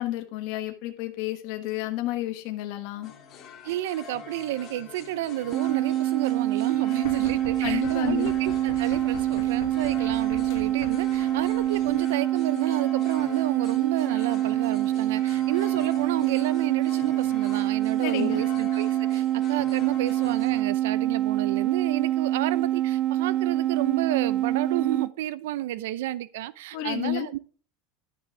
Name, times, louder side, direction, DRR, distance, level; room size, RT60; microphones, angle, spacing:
voice 1, 0.0-3.1 7.6-8.3 18.0-18.4 26.7-27.3, left 15 dB, 55° left, 1.3 m, -31 dB
sound 1, 3.0-20.6, left 7 dB, 30° left, 2.1 m, -45 dB
voice 2, 3.6-27.4, right 14 dB, 80° right, 0.6 m, -31 dB
sound 2, 5.5-25.1, right 13 dB, 35° right, 0.5 m, -25 dB
sound 3, 7.0-12.0, left 9 dB, 75° left, 1.5 m, -43 dB
11.5 x 6.2 x 4.7 m
supercardioid pair, 165°, 0 cm